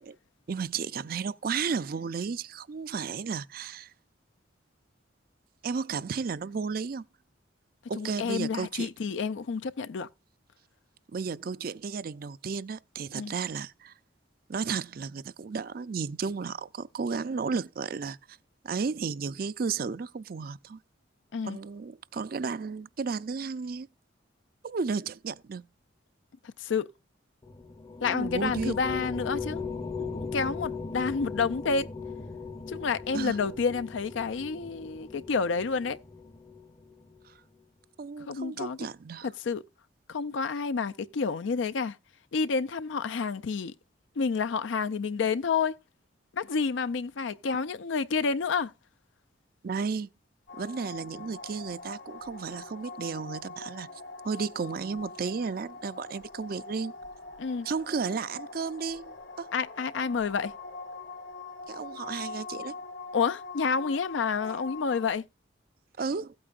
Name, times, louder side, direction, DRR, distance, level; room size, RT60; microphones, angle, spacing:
voice 1, 0.5-3.9 5.6-7.0 7.9-8.9 11.1-13.9 14.5-18.2 18.6-20.8 21.4-23.9 24.6-25.6 28.0-28.8 33.1-33.4 37.3-37.4 38.0-39.3 49.6-50.1 50.6-53.9 54.2-56.9 57.6-59.5 61.7-62.7 66.0-66.3, right 5 dB, 50° right, 0.4 m, -33 dB
voice 2, 8.0-10.1 13.1-13.3 21.3-21.6 26.6-26.9 28.0-29.6 30.0-31.9 32.7-36.0 38.3-38.9 39.2-39.6 40.1-42.0 42.3-43.7 44.2-45.8 46.3-48.7 57.4-57.7 59.5-60.5 63.1-65.3, left 5 dB, 85° left, 0.5 m, -29 dB
sound 1, 27.4-37.2, left 4 dB, 20° left, 0.6 m, -38 dB
sound 2, 50.5-65.1, left 3 dB, 65° left, 1.7 m, -43 dB
15.5 x 8.7 x 2.4 m
head